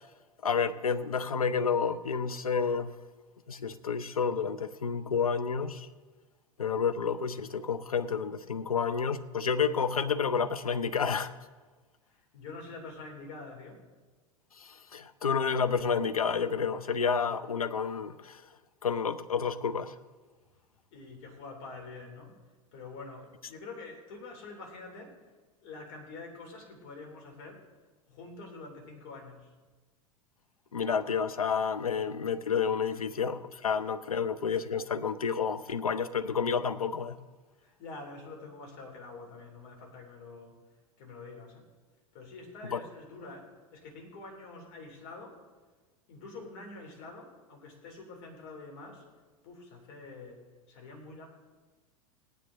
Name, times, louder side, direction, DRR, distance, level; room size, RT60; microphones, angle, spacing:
voice 1, 0.4-2.9 3.5-5.9 6.6-11.3 14.6-18.4 18.8-19.9 30.7-37.2 42.7-42.8, left 6 dB, 80° left, 12 dB, 0.6 m, -30 dB
voice 2, 12.0-13.8 20.9-22.3 22.7-25.3 25.6-27.6 28.1-29.5 37.6-40.6 41.0-41.7 42.1-45.4 46.1-49.1 49.4-51.3, left 3 dB, 55° left, 1 dB, 3.2 m, -46 dB
18.5 x 9.2 x 3.8 m, 1.3 s
figure-of-eight pair, 85°, 18 cm